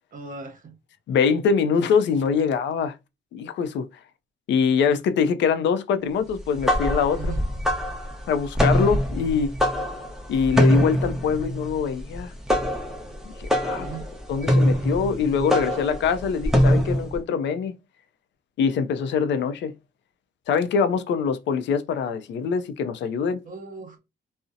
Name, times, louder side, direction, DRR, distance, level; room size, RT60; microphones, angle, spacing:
voice 1, 0.1-0.7 7.1-7.5 10.0-10.1 13.8-14.1 23.4-24.0, right 4 dB, 45° right, 0.9 m, -38 dB
voice 2, 1.1-3.0 3.3-3.9 4.5-7.3 8.3-9.5 10.3-12.3 13.4-13.9 14.3-17.8 18.6-19.7 20.5-23.4, left 6 dB, 65° left, 0.4 m, -23 dB
sound 1, 6.4-17.2, equal, ahead, 0.6 m, -23 dB
2.6 x 2.0 x 2.5 m
cardioid pair, 90°, 20 cm